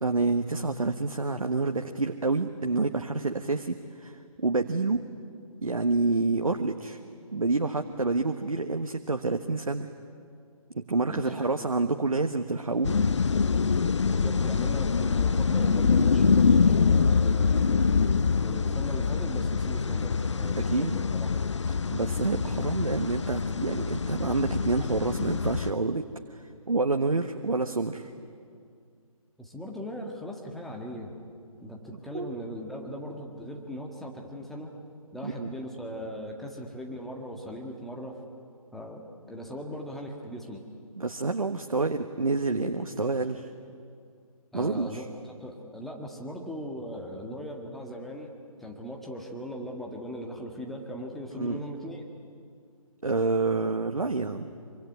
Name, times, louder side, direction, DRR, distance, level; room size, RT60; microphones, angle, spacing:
voice 1, 0.0-5.0 5.6-7.0 7.3-9.9 10.7-12.9 20.6-21.0 21.7-26.0 26.3-28.1 32.1-32.4 35.2-35.5 41.0-43.5 44.5-45.0 51.4-51.6 53.0-54.5, right 3 dB, 65° right, 6 dB, 1.4 m, -28 dB
voice 2, 11.1-11.7 14.0-17.9 18.4-21.3 29.4-31.1 31.6-34.7 35.1-38.2 38.7-40.6 44.5-45.0 45.4-48.3 48.6-52.0, equal, ahead, -1 dB, 1.7 m, -39 dB
sound 1, 12.8-25.7, left 5 dB, 50° left, 0.8 m, -25 dB
25.5 x 24.5 x 9.6 m, 2.3 s
figure-of-eight pair, 145°, 19 cm